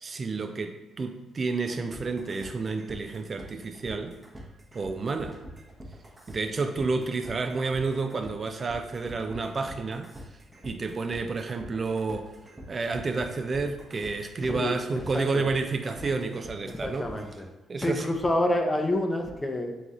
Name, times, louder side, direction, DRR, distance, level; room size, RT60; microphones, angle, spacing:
voice 1, 0.0-4.2 4.7-5.4 6.3-10.1 10.6-12.3 12.7-17.1 17.7-18.1, right 4 dB, 40° right, 7 dB, 0.3 m, -30 dB
sound 1, 1.9-17.4, equal, 20° right, 0.9 m, -45 dB
voice 2, 14.5-15.4 16.0-16.1 16.7-17.5 17.8-19.8, left 1 dB, 20° left, 4 dB, 0.6 m, -28 dB
3.9 x 3.1 x 3.7 m, 1.1 s
cardioid pair, 90°, 0 cm